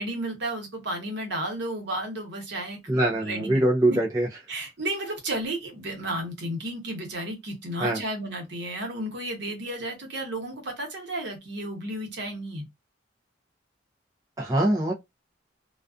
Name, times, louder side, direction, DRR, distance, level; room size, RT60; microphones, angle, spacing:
voice 1, 0.0-4.0 4.5-12.6, right 1 dB, 65° right, 1.0 m, -33 dB
voice 2, 2.9-4.3 7.8-8.0 14.4-14.9, right 1 dB, 20° right, 0.5 m, -23 dB
2.4 x 2.3 x 2.3 m
head